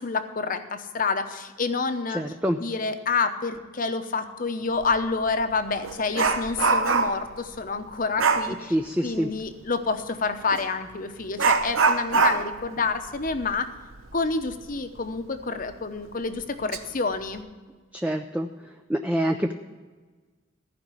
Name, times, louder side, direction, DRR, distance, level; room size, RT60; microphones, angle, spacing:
voice 1, 0.0-2.2 2.6-8.7 9.0-13.7 14.1-17.4, left 4 dB, 45° left, 8 dB, 0.9 m, -28 dB
voice 2, 2.1-2.6 8.7-9.3 17.9-18.5 18.9-19.5, equal, 5° right, 4 dB, 0.5 m, -25 dB
Dog, 4.8-5.0 5.4-7.3 8.2-8.5 10.5-10.7 11.4-14.7 15.0-15.1 15.6-15.7 16.4-16.8 17.1-17.4, right 4 dB, 90° right, 0.8 m, -24 dB
15.0 x 5.2 x 8.2 m, 1.4 s
head